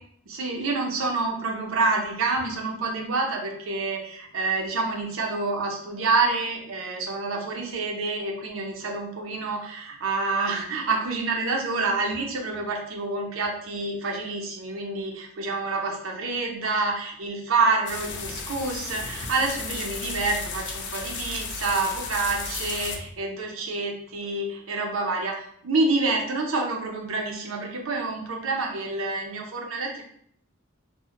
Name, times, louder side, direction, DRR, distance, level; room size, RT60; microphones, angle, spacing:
voice 1, 0.3-30.0, right 3 dB, 85° right, 1 dB, 0.5 m, -27 dB
sound 1, 17.9-23.0, left 4 dB, 60° left, 0.4 m, -34 dB
2.4 x 2.0 x 2.8 m, 0.65 s
head